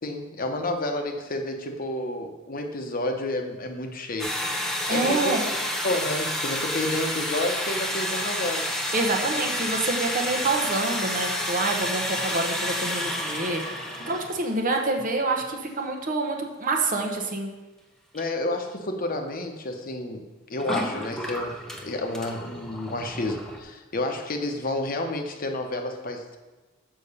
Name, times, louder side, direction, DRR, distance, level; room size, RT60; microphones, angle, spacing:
voice 1, 0.0-4.3 4.9-5.4 5.8-8.6 18.1-26.4, left 1 dB, 45° left, 4 dB, 0.9 m, -30 dB
sound 1, 4.2-14.4 14.7-15.0 15.4-15.5 18.1-18.2 20.5-23.6, left 1 dB, ahead, 0.8 m, -30 dB
voice 2, 4.9-5.5 8.9-13.6 14.1-17.5, right 2 dB, 45° right, 2 dB, 0.9 m, -27 dB
6.9 x 5.6 x 5.4 m, 1.2 s
head